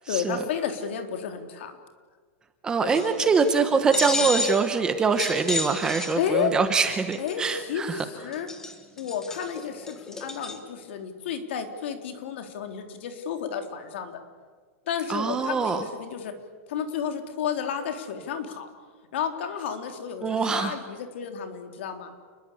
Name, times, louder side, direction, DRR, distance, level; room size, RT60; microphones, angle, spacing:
voice 1, 0.1-1.8 2.8-3.3 4.2-4.3 6.2-6.5 7.2-8.5 9.0-14.2 14.9-16.3 16.7-18.7 19.1-22.1, left 7 dB, 55° left, 6 dB, 3.6 m, -32 dB
voice 2, 2.6-8.0 15.1-15.8 20.2-20.7, right 5 dB, 10° right, 8 dB, 1.0 m, -24 dB
sound 1, 2.9-3.6 3.9-4.7 5.2-6.4 6.8-7.3 8.0-8.1 8.3-10.6, left 3 dB, 5° left, 1.6 m, -31 dB
29.0 x 21.5 x 8.6 m, 1.5 s
supercardioid pair, 180°, 8 cm